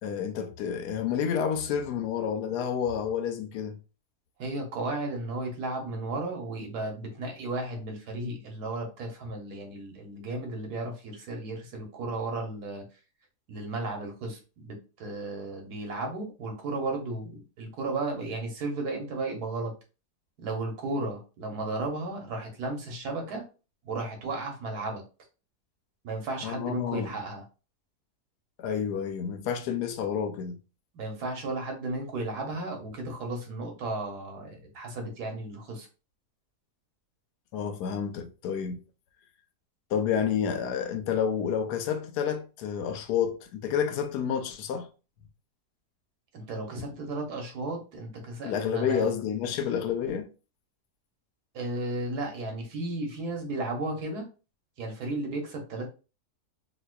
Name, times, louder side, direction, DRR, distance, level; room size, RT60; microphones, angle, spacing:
voice 1, 0.0-3.8 26.4-27.1 28.6-30.6 37.5-38.8 39.9-44.9 48.4-50.3, left 7 dB, 85° left, 1.1 m, -29 dB
voice 2, 4.4-12.8 13.5-19.7 20.4-23.4 23.8-25.0 26.0-27.4 30.9-35.9 46.3-49.1 51.5-54.3 54.8-55.9, right 2 dB, 75° right, 1.5 m, -34 dB
4.0 x 2.5 x 2.2 m
omnidirectional pair, 1.7 m